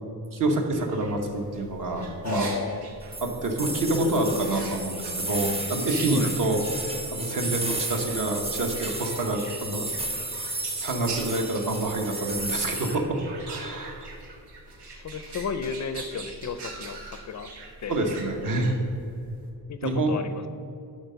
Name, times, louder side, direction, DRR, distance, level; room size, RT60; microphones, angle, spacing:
voice 1, 0.3-2.5 3.2-9.9 10.3-13.2 13.5-14.1 17.9-18.8 19.8-20.1, right 2 dB, 50° right, 3 dB, 1.2 m, -27 dB
sound 1, 0.7-19.5, right 3 dB, 75° right, 1.5 m, -43 dB
voice 2, 2.2-2.9 6.1-6.4 14.8-17.5 17.8-17.9 19.7-20.5, left 6 dB, 45° left, 10 dB, 0.4 m, -33 dB
sound 2, 3.1-12.9, right 2 dB, 15° right, 0.7 m, -33 dB
11.0 x 4.2 x 5.6 m, 2.7 s
wide cardioid pair, 150°, 40 cm